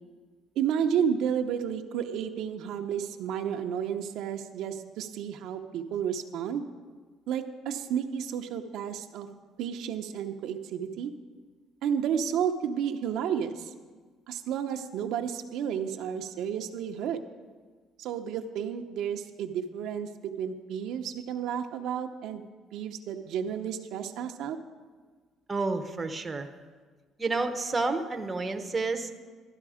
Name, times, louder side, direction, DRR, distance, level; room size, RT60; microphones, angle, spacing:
voice 1, 0.6-6.7 7.3-9.3 9.6-11.1 11.8-13.7 14.3-17.2 18.0-22.4 22.7-24.6, right 8 dB, 70° right, 4 dB, 0.8 m, -31 dB
voice 2, 25.5-26.5 27.2-29.1, right 3 dB, 20° right, 5 dB, 0.9 m, -30 dB
12.5 x 11.5 x 5.0 m, 1.5 s
cardioid pair, 120°, 0 cm